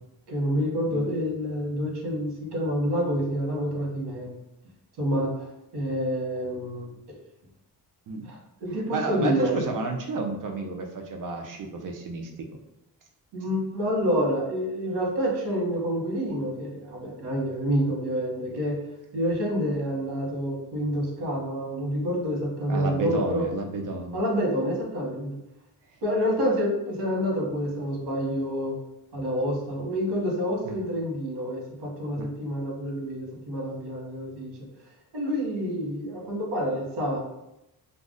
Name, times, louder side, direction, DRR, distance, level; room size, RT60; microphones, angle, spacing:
voice 1, 0.3-4.3 5.0-5.3 5.7-6.9 8.3-9.6 13.3-18.8 19.1-23.4 24.1-25.3 26.0-28.8 29.1-34.5 35.1-37.2, equal, 85° right, -2 dB, 1.1 m, -28 dB
voice 2, 8.7-12.3 22.7-24.2 30.6-30.8 32.2-32.3, right 3 dB, 55° right, 2 dB, 0.5 m, -31 dB
2.4 x 2.0 x 3.7 m, 0.87 s
cardioid pair, 120°, 40 cm